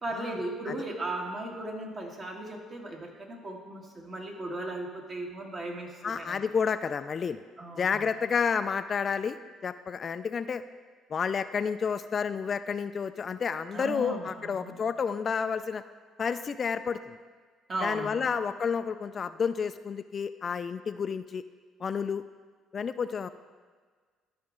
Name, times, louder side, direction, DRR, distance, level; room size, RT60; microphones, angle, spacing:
voice 1, 0.0-6.4 7.6-8.1 13.7-14.8 17.7-18.4, right 1 dB, 45° right, 0 dB, 1.8 m, -37 dB
voice 2, 6.0-7.4 7.8-9.4 9.6-10.6 11.1-15.8 16.2-17.2 17.8-21.4 21.8-22.2 22.7-23.3, left 6 dB, 45° left, 11 dB, 0.3 m, -30 dB
13.0 x 5.2 x 3.7 m, 1.5 s
supercardioid pair, 75°, 0 cm